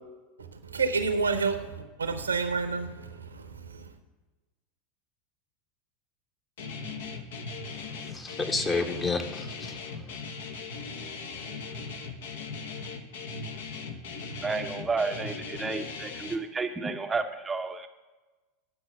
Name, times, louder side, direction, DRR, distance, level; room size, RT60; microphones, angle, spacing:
voice 1, 0.6-3.9, right 4 dB, 75° right, 0.8 m, -29 dB
Guitar, 6.6-16.4, left 4 dB, 60° left, 0.9 m, -39 dB
voice 2, 7.7-10.1, left 3 dB, 20° left, 1.0 m, -31 dB
voice 3, 14.1-17.9, right 4 dB, 15° right, 0.6 m, -32 dB
8.8 x 6.1 x 6.5 m
figure-of-eight pair, 85°, 0 cm